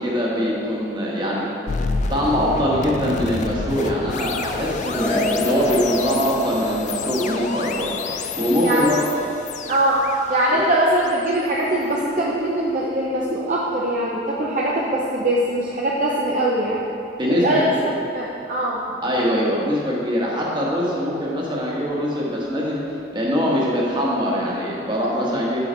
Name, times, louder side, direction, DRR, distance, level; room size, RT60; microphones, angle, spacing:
voice 1, 0.0-1.5 2.1-9.0 10.5-10.6 17.2-17.8 19.0-22.8 23.1-25.6, equal, 25° right, -4 dB, 1.3 m, -23 dB
sound 1, 1.7-12.7, left 4 dB, 40° left, 0.3 m, -30 dB
sound 2, 4.9-9.4, equal, 10° left, 1.3 m, -28 dB
voice 2, 8.6-8.9 9.7-10.0 10.3-16.8 17.4-17.6 18.1-18.8 23.4-23.6, right 1 dB, 40° right, -4 dB, 0.6 m, -22 dB
7.8 x 5.7 x 4.4 m, 2.7 s
head